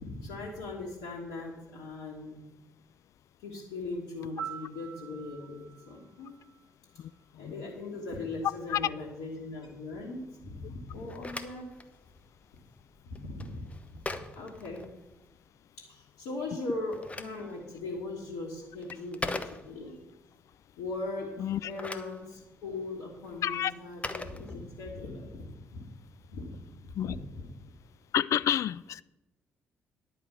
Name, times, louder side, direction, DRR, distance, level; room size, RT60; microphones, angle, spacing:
voice 1, 0.0-2.4 3.4-6.4 6.9-7.1 7.3-11.7 12.5-12.6 13.0-13.6 13.9-14.9 15.8-19.9 20.8-25.8 26.3-27.5, left 2 dB, 70° left, -5 dB, 1.6 m, -39 dB
Piano, 4.4-7.3 15.5-15.7, right 8 dB, 65° right, 1.0 m, -45 dB
voice 2, 7.0-7.6 8.7-8.8 21.4-21.7 23.4-23.7 26.9-27.1 28.1-29.0, left 11 dB, 50° left, 19 dB, 0.3 m, -30 dB
Telephone, 10.9-15.4 16.6-20.0 21.5-25.1, left 2 dB, 20° left, 0.9 m, -42 dB
10.5 x 5.0 x 8.4 m, 0.98 s
figure-of-eight pair, 40°, 7 cm